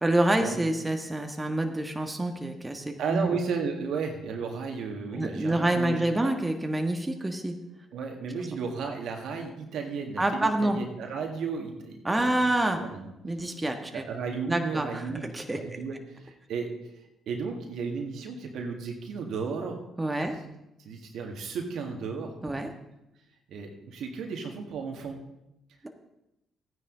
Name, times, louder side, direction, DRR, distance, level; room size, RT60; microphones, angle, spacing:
voice 1, 0.0-3.3 5.1-7.5 10.2-10.8 12.0-12.8 13.2-14.0 14.5-15.8 20.0-20.3 22.4-22.7, right 1 dB, 15° right, 4 dB, 1.4 m, -27 dB
voice 2, 3.0-6.3 7.9-12.4 12.7-13.1 13.5-13.6 13.9-15.2 15.5-16.7 17.3-19.8 20.8-22.6 23.5-25.2, right 5 dB, 65° right, 3 dB, 1.8 m, -34 dB
14.0 x 9.7 x 3.9 m, 0.89 s
hypercardioid pair, 50°, 0 cm